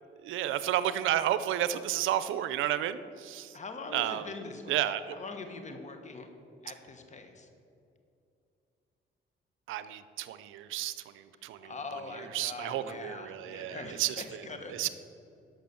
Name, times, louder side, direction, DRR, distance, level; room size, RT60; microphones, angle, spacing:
voice 1, 0.2-3.5 3.9-4.2 4.7-5.2 9.7-10.9 11.4-11.6 12.3-14.2 14.7-14.9, right 12 dB, 85° right, 13 dB, 0.6 m, -31 dB
voice 2, 3.5-6.3 6.6-7.5 11.6-14.9, left 3 dB, 35° left, 6 dB, 1.5 m, -43 dB
11.5 x 6.2 x 7.0 m, 2.6 s
cardioid pair, 90°, 20 cm